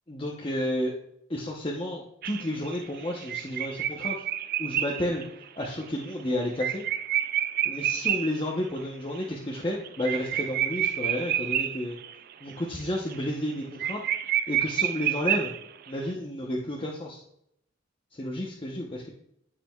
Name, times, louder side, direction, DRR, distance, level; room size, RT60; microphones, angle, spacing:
voice 1, 0.1-0.9 1.3-4.2 4.6-6.8 7.6-12.0 12.4-14.0 14.5-15.5 15.9-17.2 18.1-19.1, left 1 dB, 30° left, -2 dB, 0.9 m, -31 dB
sound 1, 2.2-8.4 8.8-8.9 9.1-9.2 9.5-12.1 12.5-12.8 13.1-13.2 13.5-13.6 13.8-15.9, right 11 dB, 55° right, 0.4 m, -29 dB
14.5 x 5.0 x 2.4 m, 0.75 s
head